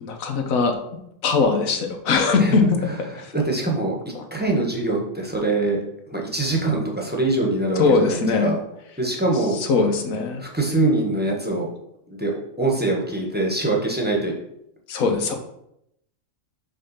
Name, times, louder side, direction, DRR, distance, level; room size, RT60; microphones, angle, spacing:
voice 1, 0.0-0.8 1.2-2.8 3.2-3.3 4.1-4.2 7.8-8.5 9.6-10.4 14.9-15.4, left 4 dB, 85° left, 5 dB, 1.3 m, -20 dB
voice 2, 3.3-3.9 4.3-5.8 6.1-8.6 9.0-9.6 10.4-11.7 12.1-12.3 12.6-14.3, right 2 dB, 10° right, -1 dB, 1.0 m, -23 dB
5.5 x 3.5 x 5.5 m, 0.80 s
omnidirectional pair, 1.4 m